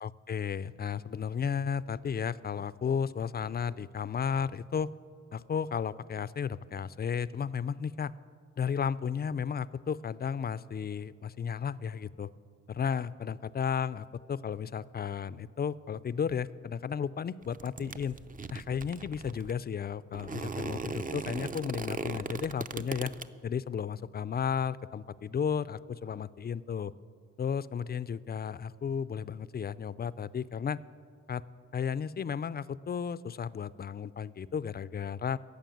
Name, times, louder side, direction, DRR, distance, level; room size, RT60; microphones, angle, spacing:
voice 1, 0.0-4.9 5.3-8.1 8.6-12.3 12.7-18.2 18.5-23.1 23.4-26.9 27.4-30.8 31.3-31.4 31.7-35.4, left 7 dB, 35° left, 17 dB, 0.4 m, -33 dB
sound 1, 17.4-19.5 20.1-23.3, right 4 dB, 30° right, 0.6 m, -38 dB
14.5 x 6.8 x 9.2 m, 2.1 s
cardioid pair, 75°, 30 cm